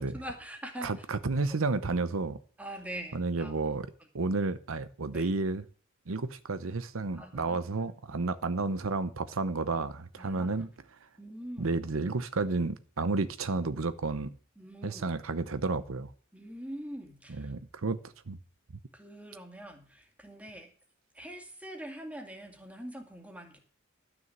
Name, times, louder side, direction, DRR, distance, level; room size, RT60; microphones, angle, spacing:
voice 1, 0.0-0.9 2.6-3.5 5.1-5.3 7.1-7.9 10.2-10.7 11.2-11.7 14.6-15.1 16.3-17.5 18.9-20.7 21.1-23.6, right 1 dB, 5° right, 2.1 m, -43 dB
voice 2, 0.8-2.4 3.1-3.9 4.1-5.6 6.1-10.7 11.6-14.3 14.8-16.1 17.3-18.0 18.3-18.4, right 3 dB, 85° right, 0.8 m, -31 dB
12.5 x 6.4 x 7.9 m
head